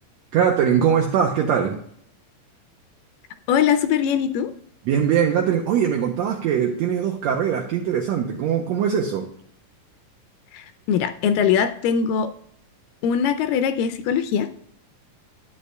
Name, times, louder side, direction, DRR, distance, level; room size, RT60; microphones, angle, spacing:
voice 1, 0.3-1.8 4.9-9.3, right 8 dB, 85° right, 1 dB, 1.5 m, -21 dB
voice 2, 3.5-4.5 10.5-12.3 13.0-14.5, left 8 dB, 85° left, 10 dB, 2.2 m, -21 dB
11.0 x 8.3 x 2.2 m, 0.67 s
omnidirectional pair, 3.9 m